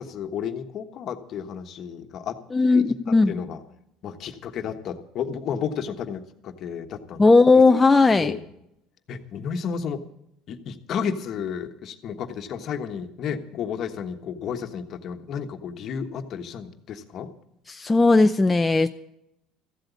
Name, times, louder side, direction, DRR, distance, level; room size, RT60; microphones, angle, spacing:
voice 1, 0.0-3.6 4.0-7.2 8.1-8.4 9.1-10.0 10.5-17.3, left 7 dB, 50° left, 7 dB, 1.3 m, -32 dB
voice 2, 2.5-3.4 7.2-8.3 17.7-18.9, left 3 dB, 15° left, 7 dB, 0.5 m, -17 dB
14.5 x 8.0 x 8.3 m, 0.79 s
supercardioid pair, 105°, 0 cm